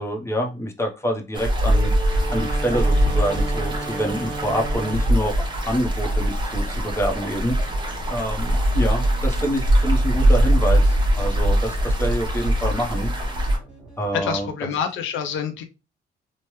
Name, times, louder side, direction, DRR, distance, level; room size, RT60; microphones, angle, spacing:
voice 1, 0.0-7.8 8.1-13.1 14.0-14.7, equal, 15° left, 0.8 m, -26 dB
sound 1, 1.3-13.6, equal, 25° right, 0.9 m, -21 dB
Wind instrument woodwind instrument, 1.6-5.2, right 3 dB, 75° right, 0.7 m, -33 dB
sound 2, 2.7-14.5, right 2 dB, 5° right, 1.4 m, -48 dB
voice 2, 14.1-15.6, left 7 dB, 75° left, 0.6 m, -27 dB
3.1 x 2.1 x 3.0 m
cardioid pair, 90°, 20 cm